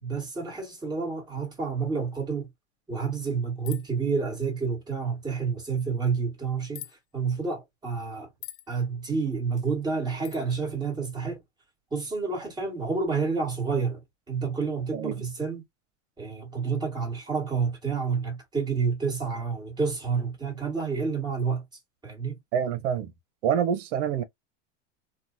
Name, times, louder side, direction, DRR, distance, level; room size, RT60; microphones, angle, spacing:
voice 1, 0.0-2.5 2.9-6.9 7.1-8.3 8.7-11.4 11.9-15.6 16.2-21.6 22.0-22.4, right 5 dB, 10° right, 1.7 m, -29 dB
sound 1, 3.6-4.0 6.7-6.9 8.4-8.7 10.2-10.4, left 15 dB, 65° left, 0.6 m, -41 dB
voice 2, 22.5-23.1 23.4-24.2, right 8 dB, 65° right, 0.9 m, -26 dB
3.1 x 2.3 x 2.6 m
supercardioid pair, 140°, 37 cm